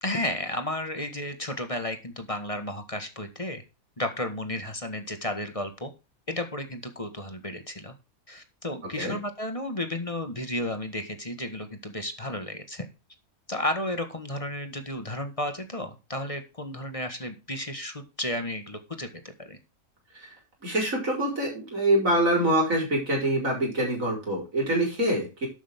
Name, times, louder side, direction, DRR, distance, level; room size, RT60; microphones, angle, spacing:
voice 1, 0.0-3.6 4.0-5.9 6.3-7.9 8.3-12.9 13.5-19.1 19.4-19.6, left 1 dB, 25° left, 7 dB, 1.7 m, -33 dB
voice 2, 20.6-25.5, right 1 dB, 65° right, 0 dB, 5.2 m, -25 dB
12.0 x 8.7 x 3.7 m, 0.28 s
omnidirectional pair, 1.5 m